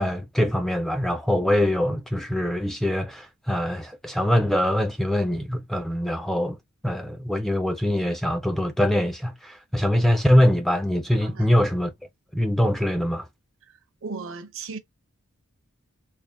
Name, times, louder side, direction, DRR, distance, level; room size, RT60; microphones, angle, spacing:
voice 1, 0.0-6.6 6.8-11.9 12.3-13.3, left 1 dB, ahead, 0.3 m, -23 dB
voice 2, 13.7-14.8, right 4 dB, 60° right, 0.6 m, -37 dB
3.4 x 2.1 x 3.5 m
head